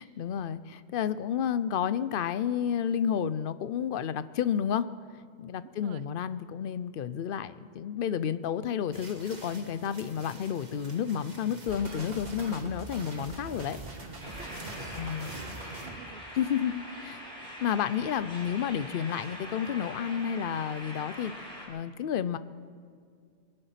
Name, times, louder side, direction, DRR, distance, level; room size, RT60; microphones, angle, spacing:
voice 1, 0.0-4.9 5.4-13.8 14.9-15.3 16.4-22.4, left 8 dB, 65° left, 14 dB, 0.8 m, -31 dB
voice 2, 5.6-6.2 14.3-16.3, right 8 dB, 80° right, 13 dB, 0.9 m, -50 dB
sound 1, 8.9-15.9, right 2 dB, 45° right, 1.6 m, -48 dB
sound 2, 11.7-16.0, right 2 dB, 65° right, 1.9 m, -43 dB
sound 3, 14.2-21.7, equal, 5° left, 4.0 m, -43 dB
23.5 x 10.0 x 5.8 m, 2.2 s
omnidirectional pair, 1.0 m